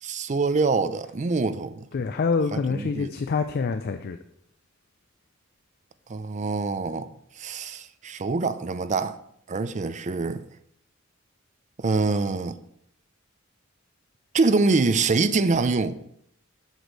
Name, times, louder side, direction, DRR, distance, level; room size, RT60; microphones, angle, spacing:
voice 1, 0.0-1.9 2.5-3.1 6.1-7.1 7.4-9.2 9.5-10.4 11.8-12.6 14.3-16.0, right 3 dB, 35° right, 0.5 m, -25 dB
voice 2, 1.9-4.2, left 4 dB, 50° left, 0.4 m, -26 dB
8.0 x 6.4 x 4.0 m
head